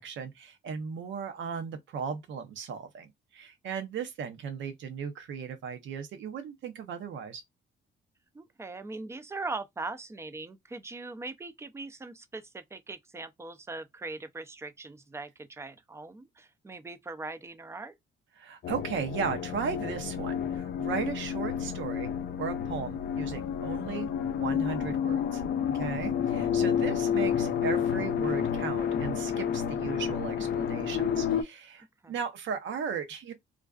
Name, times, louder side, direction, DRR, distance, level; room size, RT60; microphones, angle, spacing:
voice 1, 0.0-7.4 18.4-22.1 22.4-33.3, right 6 dB, 70° right, 0.7 m, -36 dB
voice 2, 8.3-18.0 26.7-26.9 32.0-32.1, right 3 dB, 15° right, 0.4 m, -40 dB
sound 1, 18.6-31.4, left 8 dB, 55° left, 0.4 m, -30 dB
2.4 x 2.2 x 2.3 m
cardioid pair, 90°, 20 cm